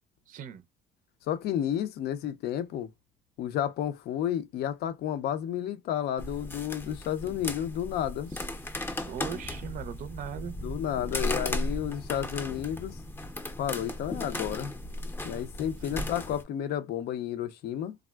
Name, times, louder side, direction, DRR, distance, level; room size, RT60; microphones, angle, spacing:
voice 1, 0.3-0.6 8.3-8.5 9.1-10.6 15.9-16.0, right 8 dB, 50° right, 0.4 m, -39 dB
voice 2, 1.3-2.9 3.4-8.3 10.6-13.0 13.6-14.7 15.2-18.0, left 10 dB, 70° left, 0.6 m, -31 dB
sound 1, 6.2-16.4, left 1 dB, 15° left, 0.6 m, -36 dB
3.4 x 2.0 x 2.3 m
cardioid pair, 110°, 17 cm